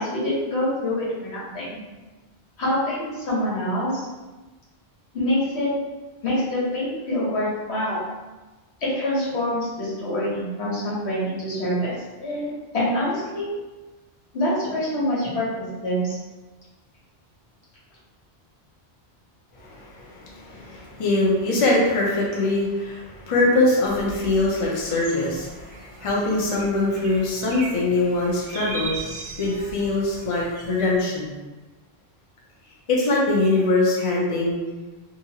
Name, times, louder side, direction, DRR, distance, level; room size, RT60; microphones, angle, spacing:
voice 1, 0.0-1.8 2.6-4.1 5.1-5.7 6.2-8.0 8.8-13.5 14.3-16.2, left 1 dB, 90° left, -7 dB, 1.3 m, -26 dB
voice 2, 19.6-29.0 29.4-31.3 32.9-34.6, left 2 dB, 40° left, -4 dB, 0.6 m, -23 dB
sound 1, 23.9-31.0, right 3 dB, 65° right, 0.7 m, -38 dB
2.8 x 2.5 x 2.8 m, 1.2 s
omnidirectional pair, 1.1 m